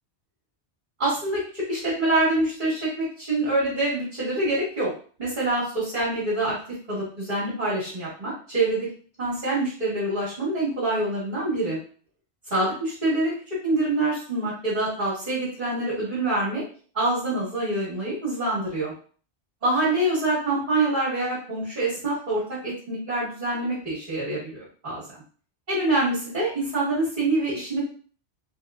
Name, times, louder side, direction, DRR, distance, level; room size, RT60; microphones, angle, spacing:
voice 1, 1.0-4.9 5.2-6.5 6.9-8.9 9.2-11.8 12.5-13.3 13.6-16.6 16.9-18.9 19.6-25.0 25.7-27.8, right 2 dB, 45° right, -10 dB, 1.5 m, -25 dB
3.2 x 2.8 x 2.4 m, 0.43 s
omnidirectional pair, 1.1 m